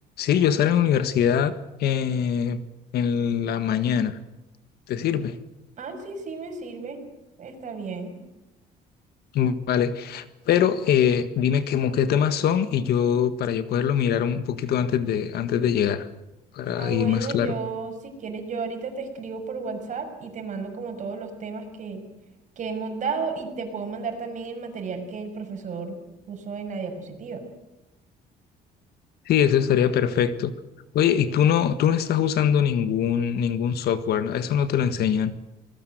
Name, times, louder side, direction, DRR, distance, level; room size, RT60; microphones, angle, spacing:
voice 1, 0.2-1.5 1.8-2.6 2.9-4.2 4.9-5.4 9.3-16.1 16.5-17.5 29.3-30.5 30.9-35.3, left 8 dB, 70° left, 1.6 m, -23 dB
voice 2, 5.8-7.0 7.4-8.2 16.7-22.0 22.6-26.0 26.3-27.4, right 4 dB, 45° right, 6.4 m, -33 dB
27.0 x 20.0 x 8.0 m
cardioid pair, 110°, 17 cm